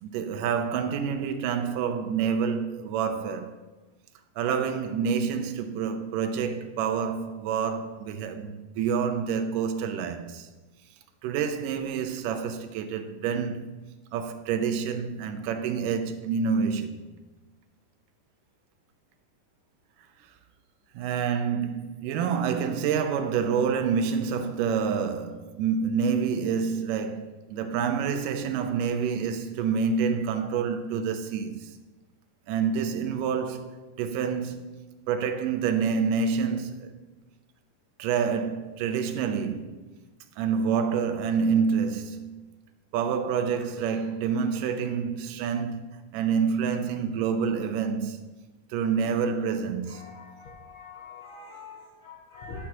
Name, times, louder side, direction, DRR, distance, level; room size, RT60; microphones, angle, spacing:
voice 1, 0.0-3.6 4.4-10.5 11.2-13.7 14.1-17.0 20.9-31.7 32.5-34.7 35.1-36.9 38.0-39.9 40.4-42.3 42.9-45.9 46.1-48.2 48.7-50.2, right 6 dB, 80° right, 2.3 m, -28 dB
voice 2, 49.9-52.7, left 3 dB, 80° left, 1.1 m, -44 dB
11.0 x 8.5 x 3.0 m
omnidirectional pair, 3.9 m